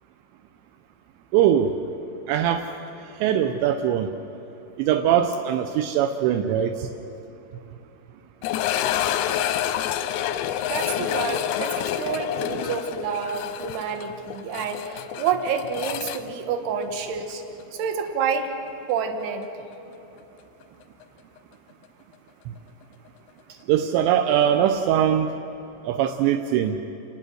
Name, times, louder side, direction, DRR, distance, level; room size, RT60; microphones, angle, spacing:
voice 1, 1.3-1.7 2.3-2.7 3.2-4.1 4.8-6.9 23.7-25.3 25.9-26.8, right 10 dB, 80° right, 5 dB, 2.7 m, -21 dB
sound 1, 8.4-17.3 17.6-17.7 18.3-18.4 21.0-21.1, left 10 dB, 80° left, 2.6 m, -28 dB
voice 2, 10.6-17.4 17.7-18.5 18.9-19.5, right 6 dB, 65° right, 5 dB, 3.1 m, -28 dB
29.0 x 18.5 x 6.3 m, 2.9 s
omnidirectional pair, 5.7 m